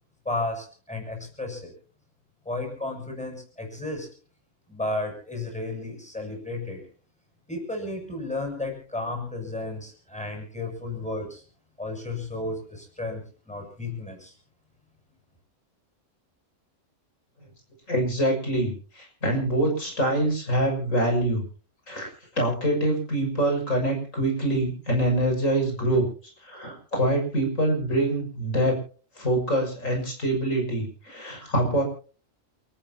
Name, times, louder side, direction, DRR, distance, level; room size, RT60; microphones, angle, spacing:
voice 1, 0.2-1.7 2.5-4.1 4.7-6.8 7.5-11.4 11.8-14.3, left 2 dB, 5° left, 2 dB, 7.5 m, -33 dB
voice 2, 17.9-21.4 21.9-22.1 22.3-26.0 26.4-28.7 29.2-31.8, right 1 dB, 85° left, 2 dB, 6.7 m, -25 dB
29.5 x 14.5 x 2.9 m, 0.38 s
omnidirectional pair, 1.3 m